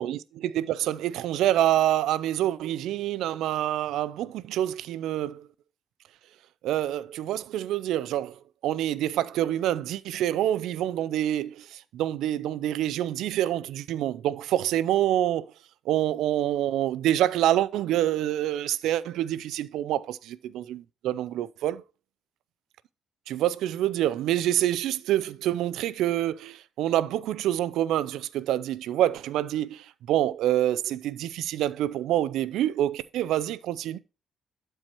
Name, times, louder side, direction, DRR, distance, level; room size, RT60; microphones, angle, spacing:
voice 1, 0.0-5.5 6.6-15.5 15.9-21.8 23.3-34.0, right 12 dB, 85° right, 0.5 m, -27 dB
12.0 x 4.6 x 4.5 m
cardioid pair, 90°, 0 cm